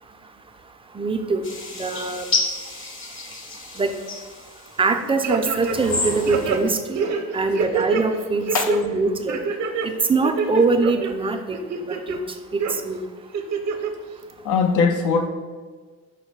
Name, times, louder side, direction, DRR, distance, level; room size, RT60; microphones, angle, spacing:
voice 1, 0.9-1.4 1.7-2.3 3.8-3.9 4.8-7.1 7.3-9.4 9.8-11.6 11.9-12.2 12.5-13.0, right 3 dB, 20° right, 0.4 m, -23 dB
sound 1, 1.4-4.9 5.5-6.6, left 3 dB, 40° left, 0.8 m, -30 dB
sound 2, 5.2-6.0 6.3-8.0 8.4-8.8 9.3-9.9 10.2-11.1 11.5-12.2 12.6-12.7 13.3-13.9 14.3-14.4, right 5 dB, 65° right, 0.6 m, -26 dB
voice 2, 14.4-15.3, left 5 dB, 75° left, 0.6 m, -20 dB
5.3 x 2.1 x 4.5 m
cardioid pair, 90°, 30 cm